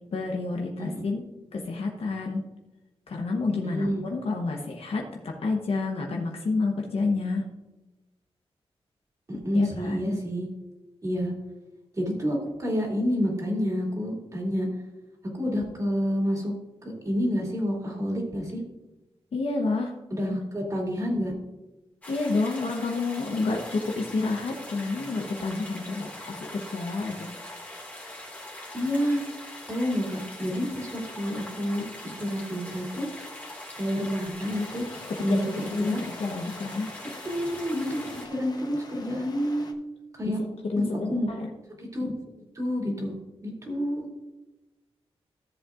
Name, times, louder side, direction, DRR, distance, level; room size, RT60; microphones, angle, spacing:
voice 1, 0.1-1.2 1.5-2.4 3.1-7.5 9.5-10.2 19.3-20.0 20.3-20.4 22.1-27.3 35.1-36.9 40.2-41.5, left 3 dB, 70° left, 1 dB, 1.0 m, -29 dB
voice 2, 3.6-4.0 9.3-10.5 11.0-11.3 11.9-14.7 15.3-16.5 16.8-18.6 20.1-21.3 28.7-29.2 29.7-33.1 33.7-34.8 35.2-36.0 37.2-37.8 38.2-39.7 40.1-40.4 40.7-41.3 41.8-42.1 42.5-43.1 43.4-44.1, equal, 30° right, -2 dB, 2.5 m, -29 dB
sound 1, 22.0-38.3, left 1 dB, 15° left, 2.0 m, -42 dB
Stream, 34.4-39.7, left 3 dB, 40° left, 0.9 m, -46 dB
14.0 x 7.5 x 2.5 m, 1.0 s
wide cardioid pair, 130°, 11 cm